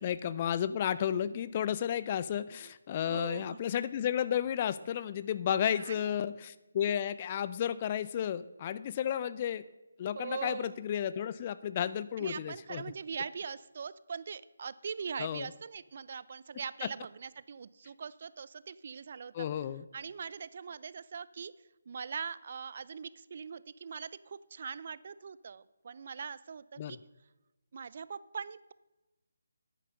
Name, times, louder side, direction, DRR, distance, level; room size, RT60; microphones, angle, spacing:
voice 1, 0.0-9.6 10.0-12.9 15.2-15.5 19.3-19.8 26.8-27.0, left 9 dB, 30° left, 15 dB, 0.4 m, -32 dB
voice 2, 3.0-3.6 5.6-6.2 10.2-10.8 12.2-19.3 19.9-21.5 21.9-27.0 27.7-28.7, right 6 dB, 50° right, 18 dB, 0.5 m, -42 dB
10.0 x 9.2 x 5.2 m, 1.1 s
figure-of-eight pair, 155°, 0 cm